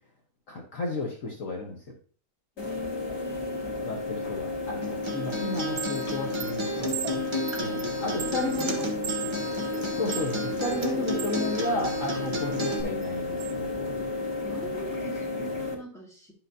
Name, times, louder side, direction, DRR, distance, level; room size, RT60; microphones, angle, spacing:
voice 1, 0.5-1.8 3.9-7.2 7.6-8.9 10.0-14.1, left 2 dB, 55° left, 0 dB, 1.5 m, -33 dB
sound 1, 2.6-15.7, left 3 dB, 75° left, 2.3 m, -33 dB
voice 2, 2.6-3.7 8.2-9.1 10.9-11.5 14.4-16.3, equal, ahead, -3 dB, 2.2 m, -43 dB
Acoustic guitar, 4.8-12.8, equal, 20° right, 0.9 m, -33 dB
Chime, 5.6-11.4 11.9-13.5, right 10 dB, 90° right, 1.3 m, -39 dB
10.5 x 5.9 x 2.7 m, 0.42 s
omnidirectional pair, 1.8 m